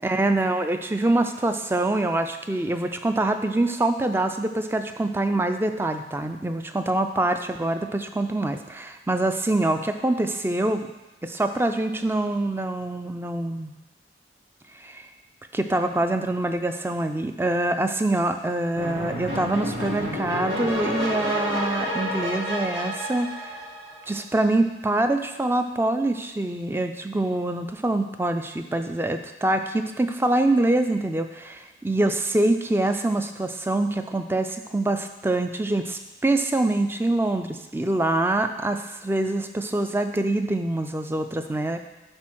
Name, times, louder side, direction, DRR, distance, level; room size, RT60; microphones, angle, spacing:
voice 1, 0.0-10.9 11.2-13.7 14.7-15.1 15.5-23.6 24.1-41.8, right 2 dB, 10° right, 7 dB, 0.4 m, -25 dB
sound 1, 18.8-24.2, equal, 85° right, 2.4 m, -30 dB
8.8 x 3.8 x 6.1 m, 1.1 s
head